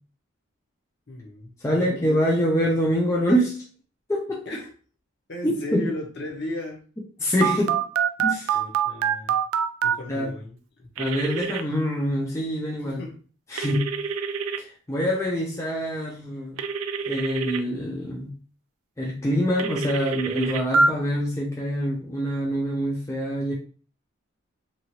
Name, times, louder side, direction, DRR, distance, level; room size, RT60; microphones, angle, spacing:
voice 1, 1.1-2.1 4.4-4.7 5.3-6.8 8.5-9.4 9.8-10.9 12.8-13.2, left 2 dB, 55° left, 0 dB, 0.9 m, -36 dB
voice 2, 1.6-3.6 4.1-4.4 5.4-5.8 7.2-7.8 8.2-8.6 10.1-10.3 11.0-13.0 13.5-13.8 14.6-16.6 17.1-18.3 19.0-23.5, equal, 15° left, -3 dB, 0.5 m, -25 dB
Telephone, 7.4-10.0 11.0-11.6 13.6-14.6 16.6-17.6 19.6-20.9, right 6 dB, 80° right, 0.3 m, -25 dB
2.9 x 2.4 x 2.8 m, 0.40 s
head